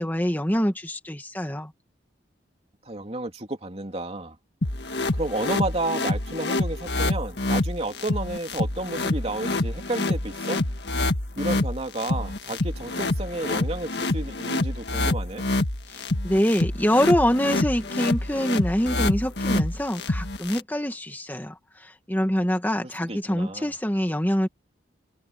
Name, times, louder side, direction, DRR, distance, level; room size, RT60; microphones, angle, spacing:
voice 1, 0.0-1.7 15.9-24.5, equal, 10° left, 1.9 m, -25 dB
voice 2, 2.8-4.3 5.1-10.6 11.4-15.4 23.1-23.7, right 2 dB, 35° right, 3.1 m, -31 dB
sound 1, 4.6-20.6, left 2 dB, 65° left, 1.8 m, -27 dB
head